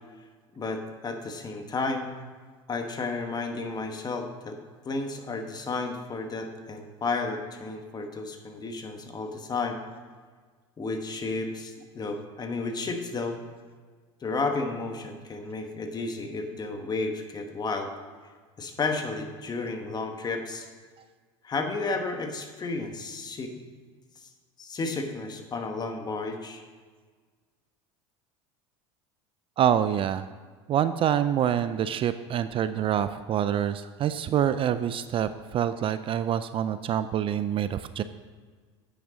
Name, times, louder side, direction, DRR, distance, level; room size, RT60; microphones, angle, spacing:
voice 1, 0.5-2.1 2.7-4.6 4.8-9.8 10.8-13.4 14.2-17.9 18.6-20.7 21.4-23.5 24.2-24.3 24.6-26.6, left 3 dB, 30° left, 5 dB, 1.3 m, -32 dB
voice 2, 29.6-30.3 30.7-38.0, right 9 dB, 40° right, 12 dB, 0.4 m, -26 dB
8.8 x 6.5 x 5.1 m, 1.5 s
supercardioid pair, 90°, 14 cm